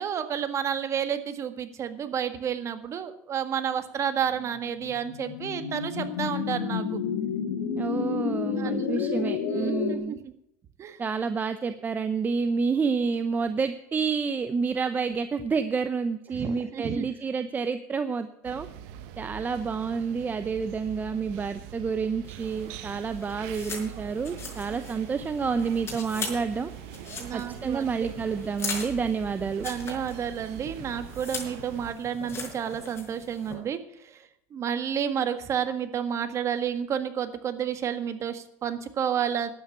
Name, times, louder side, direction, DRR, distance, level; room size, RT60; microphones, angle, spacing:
voice 1, 0.0-7.0 8.6-8.9 9.2-10.2 10.8-11.0 16.3-17.1 27.2-28.1 29.6-39.5, right 8 dB, 40° right, 9 dB, 1.7 m, -31 dB
sound 1, 4.4-10.0, left 7 dB, 90° left, 2.3 m, -30 dB
voice 2, 7.8-10.2 11.0-18.7 19.2-26.7 27.3-29.7, right 5 dB, 20° right, 10 dB, 0.8 m, -29 dB
sound 2, 18.4-31.9, right 11 dB, 70° right, 1.2 m, -43 dB
sound 3, 22.2-33.5, left 4 dB, 30° left, 5.5 m, -40 dB
12.5 x 9.0 x 7.2 m, 0.78 s
supercardioid pair, 110°, 8 cm